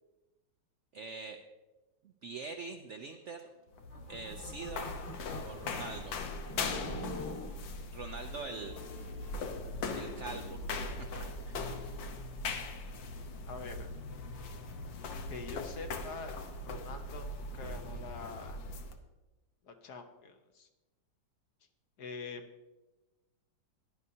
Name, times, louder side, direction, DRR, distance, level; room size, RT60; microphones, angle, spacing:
voice 1, 0.9-1.4 2.0-3.5 4.1-4.9 5.4-6.1 7.9-8.8 9.4-9.5 9.9-11.8, right 4 dB, 85° right, 6 dB, 0.6 m, -44 dB
sound 1, 3.7-19.0, left 3 dB, 85° left, 1.7 m, -40 dB
sound 2, 3.8-5.9 6.4-7.6 8.1-9.6, left 1 dB, 25° left, 1.2 m, -46 dB
voice 2, 13.5-13.9 15.3-18.6 19.6-20.7 22.0-22.4, left 4 dB, 65° left, 5 dB, 1.4 m, -45 dB
16.0 x 11.0 x 2.8 m, 1.1 s
omnidirectional pair, 2.0 m